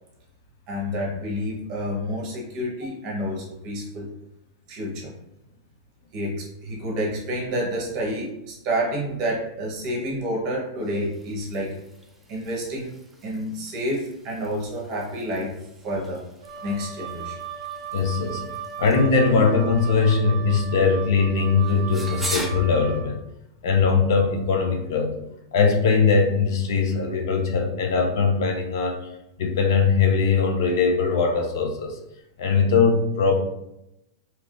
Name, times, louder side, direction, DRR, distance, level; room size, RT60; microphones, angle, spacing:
voice 1, 0.7-4.1 4.7-5.1 6.1-11.7 12.3-12.9 13.2-15.6 15.8-16.2 16.6-17.3, equal, 30° right, -2 dB, 0.9 m, -29 dB
sound 1, 6.7-22.5, right 1 dB, 5° right, 0.4 m, -42 dB
Wind instrument woodwind instrument, 16.4-23.1, right 8 dB, 65° right, 0.5 m, -36 dB
voice 2, 17.9-18.5 18.8-23.2 23.6-25.2 25.5-29.0 29.4-32.0 32.4-33.3, left 5 dB, 60° left, 3 dB, 0.6 m, -21 dB
3.4 x 2.8 x 2.5 m, 0.85 s
supercardioid pair, 170°, 2 cm